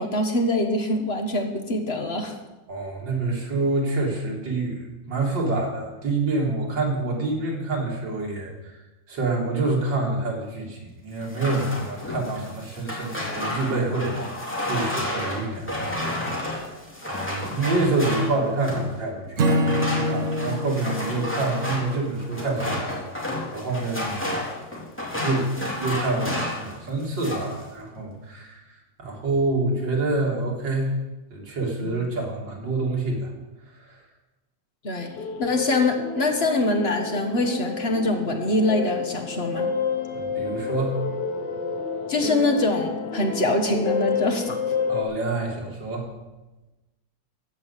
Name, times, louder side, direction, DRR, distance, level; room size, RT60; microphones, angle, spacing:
voice 1, 0.0-2.4 31.8-31.9 34.8-35.1 35.4-39.7 42.1-44.6, left 2 dB, 35° left, 4 dB, 1.4 m, -24 dB
voice 2, 2.7-8.8 9.1-14.2 14.7-16.6 17.1-24.2 25.2-25.5 25.8-28.7 29.0-30.9 31.3-33.3 33.8-34.0 40.1-41.0 44.9-46.1, right 2 dB, 80° right, -1 dB, 3.3 m, -27 dB
sound 1, 11.2-18.9 19.4-26.7 27.0-27.6, left 1 dB, 5° left, 2.9 m, -31 dB
Acoustic guitar / Strum, 19.4-22.7, equal, 50° right, 1.3 m, -26 dB
sound 2, 35.0-45.0, left 5 dB, 70° left, 1.7 m, -29 dB
14.5 x 5.6 x 8.1 m, 1.1 s
omnidirectional pair, 1.9 m